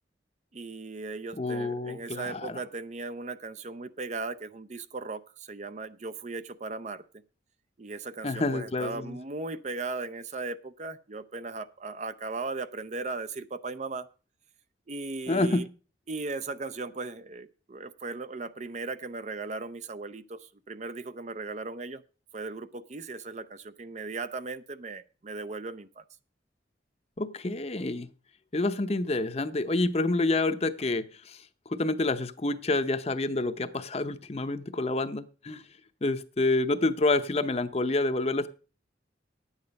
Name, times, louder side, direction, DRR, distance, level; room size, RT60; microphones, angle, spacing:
voice 1, 0.5-7.0 7.8-14.1 14.9-15.7 16.1-22.0 22.3-26.0, right 3 dB, 40° right, 13 dB, 0.5 m, -37 dB
voice 2, 1.4-2.6 8.2-9.2 15.3-15.7 27.2-28.1 28.5-31.4 31.7-35.6 36.0-38.5, left 2 dB, 35° left, 11 dB, 0.7 m, -28 dB
10.5 x 8.9 x 5.2 m, 0.36 s
head